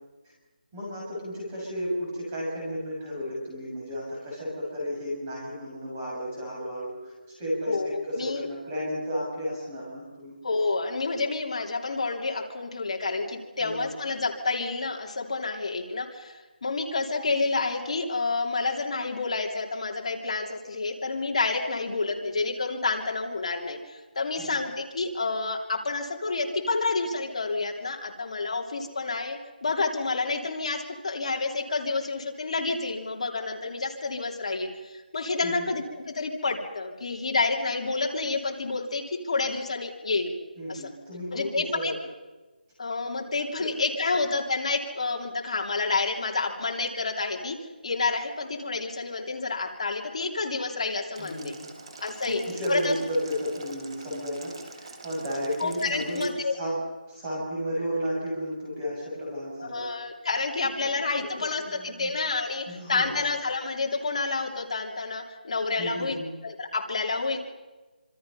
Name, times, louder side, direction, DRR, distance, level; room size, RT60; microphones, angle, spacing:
voice 1, 0.7-7.1 7.4-10.3 13.6-13.9 24.4-24.5 35.4-35.7 40.6-42.0 43.6-43.7 51.2-51.7 52.2-56.3 56.6-56.8 57.1-59.9 61.2-61.4 61.7-62.1 62.7-63.2 65.8-66.3, equal, 10° right, -5 dB, 6.9 m, -33 dB
voice 2, 7.7-8.5 10.4-40.4 40.7-40.9 41.3-41.9 42.8-47.5 47.8-51.5 52.0-52.4 52.7-53.0 55.6-56.7 59.7-66.2 66.4-67.4, left 3 dB, 40° left, 1 dB, 3.0 m, -29 dB
Boiling, 51.1-56.3, right 3 dB, 30° right, 2.9 m, -45 dB
26.0 x 26.0 x 5.6 m, 1.2 s
figure-of-eight pair, 175°, 5 cm